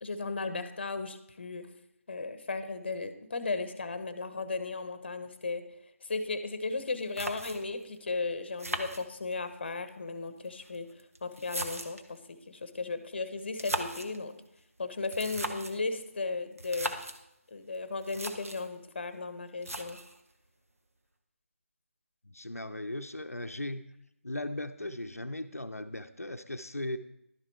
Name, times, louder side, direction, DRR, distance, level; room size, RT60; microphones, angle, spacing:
voice 1, 0.0-1.7 2.1-5.7 6.0-14.3 14.8-17.0 17.5-20.0, left 3 dB, 45° left, 11 dB, 0.8 m, -35 dB
sound 1, 6.8-6.9 7.2-7.8 8.6-9.6 10.5-12.2 13.4-14.2 15.0-15.8 16.6-17.2 17.7-17.8 18.0-18.7 19.6-20.2, right 1 dB, 75° right, 1.0 m, -38 dB
voice 2, 22.2-23.8 24.2-27.0, left 1 dB, 90° left, 7 dB, 0.6 m, -37 dB
11.5 x 6.7 x 4.5 m, 0.80 s
figure-of-eight pair, 155°, 8 cm